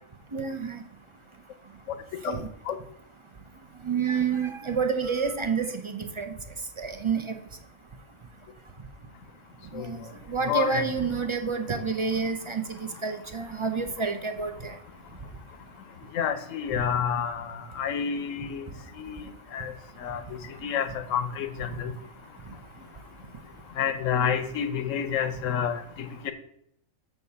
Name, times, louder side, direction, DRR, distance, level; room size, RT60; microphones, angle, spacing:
voice 1, 0.3-0.8 2.3-2.4 3.8-6.3 6.8-7.2 9.8-10.0 10.3-12.6 13.0-14.7, right 5 dB, 40° right, 7 dB, 0.4 m, -28 dB
voice 2, 10.5-10.8 16.1-18.6 19.0-19.2 19.5-19.7 20.0-20.2 20.6-21.9 23.8-26.3, left 8 dB, 70° left, 11 dB, 1.1 m, -29 dB
6.8 x 4.6 x 6.9 m, 0.71 s
omnidirectional pair, 1.4 m